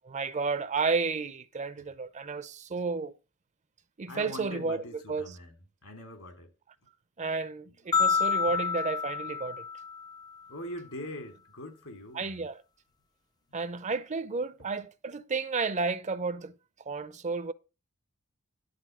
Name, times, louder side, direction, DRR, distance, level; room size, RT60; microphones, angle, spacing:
voice 1, 0.1-3.1 4.0-4.8 5.1-5.3 7.2-9.6 12.1-12.6 13.5-16.5 16.9-17.5, right 4 dB, 35° right, 0.6 m, -32 dB
voice 2, 4.1-6.5 8.5-8.6 10.4-12.5 14.6-14.7, left 1 dB, 75° left, 2.7 m, -43 dB
sound 1, 7.9-10.3, left 6 dB, 20° left, 0.4 m, -28 dB
11.5 x 4.2 x 7.3 m
head